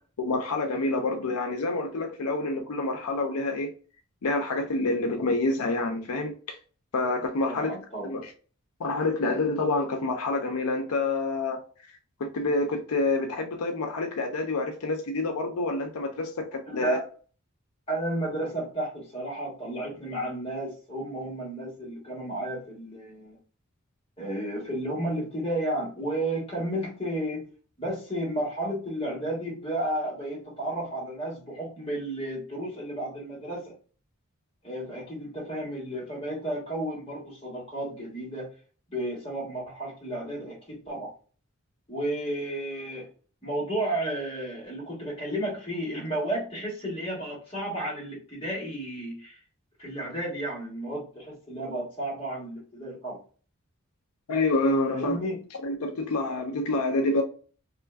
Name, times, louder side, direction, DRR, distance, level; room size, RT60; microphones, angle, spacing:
voice 1, 0.2-3.7 4.2-6.6 6.9-7.8 8.0-8.3 8.8-11.6 12.2-17.0 54.3-55.2 55.6-57.2, left 2 dB, 90° left, 0.5 m, -27 dB
voice 2, 7.5-8.1 16.7-17.1 17.9-23.4 24.2-27.5 27.8-33.7 34.6-38.5 38.9-41.1 41.9-43.1 43.4-49.4 49.8-53.2 54.9-55.4, right 1 dB, 25° left, 1.3 m, -32 dB
3.1 x 2.5 x 2.3 m
head